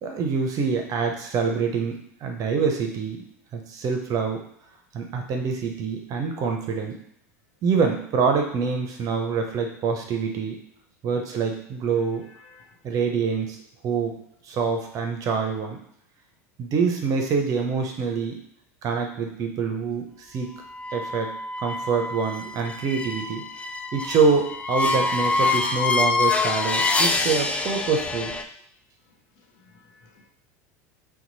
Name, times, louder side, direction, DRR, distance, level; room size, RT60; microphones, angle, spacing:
voice 1, 0.0-3.3 3.5-4.4 4.9-7.0 7.6-10.6 11.0-12.2 12.8-13.6 13.8-14.1 14.5-15.8 16.6-18.4 18.8-20.5 20.9-21.3 21.6-23.4 23.9-28.3, right 5 dB, 45° right, 3 dB, 0.7 m, -25 dB
voice 2, 11.9-12.9 14.5-14.6 22.6-22.8 29.1-30.3, left 4 dB, 55° left, 1 dB, 0.9 m, -56 dB
sound 1, 20.7-28.4, left 3 dB, 15° left, 0.3 m, -26 dB
2.9 x 2.3 x 4.0 m, 0.73 s
hypercardioid pair, 90°, 8 cm